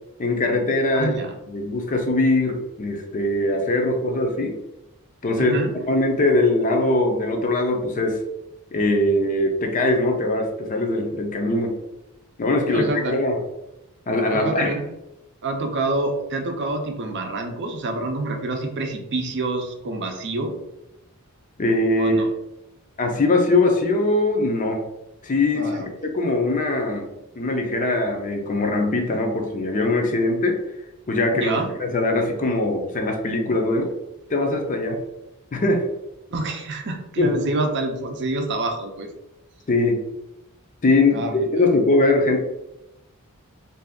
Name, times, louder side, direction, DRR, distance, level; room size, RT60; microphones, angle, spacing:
voice 1, 0.2-1.1 1.5-4.5 5.2-5.5 5.9-8.2 8.7-11.7 12.4-13.4 14.1-14.7 21.6-22.1 23.0-24.8 25.2-27.1 27.3-30.6 31.1-33.9 34.3-35.0 35.5-35.8 37.2-37.3 39.7-40.0 40.8-42.4, left 2 dB, 35° left, 3 dB, 0.5 m, -21 dB
voice 2, 0.9-1.3 5.4-5.7 12.7-13.2 14.3-14.9 15.4-20.5 22.0-22.3 25.5-25.9 31.3-31.7 36.3-39.1 41.1-41.8, right 2 dB, 55° right, 4 dB, 0.5 m, -27 dB
2.6 x 2.4 x 3.5 m, 0.89 s
head